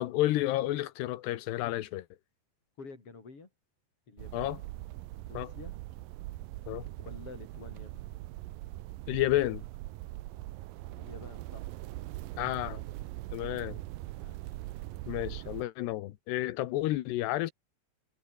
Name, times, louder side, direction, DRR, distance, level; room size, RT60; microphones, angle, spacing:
voice 1, 0.0-2.1 4.3-4.6 5.3-5.5 6.7-6.9 9.1-9.6 12.4-12.8 13.3-13.8 15.1-17.5, left 15 dB, 80° left, 3.1 m, -31 dB
voice 2, 2.8-3.5 4.1-4.6 5.3-6.0 7.0-7.9 11.0-11.7 14.2-14.4, left 4 dB, 35° left, 5.9 m, -49 dB
sound 1, 4.2-15.7, right 17 dB, 80° right, 2.1 m, -42 dB
omnidirectional pair, 4.9 m